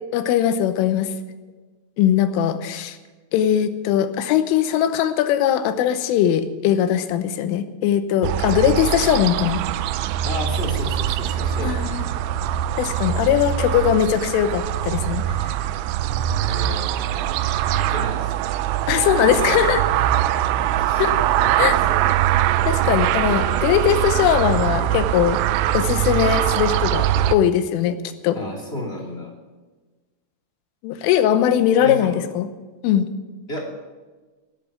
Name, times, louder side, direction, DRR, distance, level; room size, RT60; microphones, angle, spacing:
voice 1, 0.1-1.1 2.0-3.0 3.3-9.6 11.6-12.1 12.8-15.4 18.9-19.8 21.0-21.1 21.6-21.8 22.7-25.4 25.7-28.0 28.2-28.4 30.8-32.5 32.8-33.1, left 10 dB, 85° left, 10 dB, 3.5 m, -20 dB
sound 1, 8.2-27.4, right 12 dB, 80° right, 2.8 m, -22 dB
voice 2, 10.2-11.8 16.4-17.4 17.7-18.6 18.9-19.7 20.7-22.0 28.3-29.3 31.8-32.3 33.5-33.7, left 1 dB, 20° left, -1 dB, 1.8 m, -33 dB
17.5 x 8.1 x 8.5 m, 1.3 s
omnidirectional pair, 5.6 m